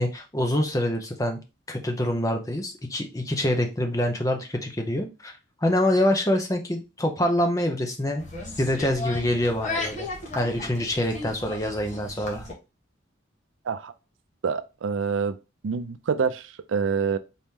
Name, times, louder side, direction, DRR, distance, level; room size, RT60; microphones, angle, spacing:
voice 1, 0.0-1.4 1.7-5.3 5.6-8.2 8.6-10.1 10.3-12.5, left 1 dB, 15° left, 0.7 m, -25 dB
sound 1, 8.2-12.5, left 2 dB, 40° left, 1.3 m, -35 dB
voice 2, 14.4-15.4 15.6-17.2, right 5 dB, 75° right, 0.4 m, -26 dB
4.1 x 3.0 x 3.6 m
head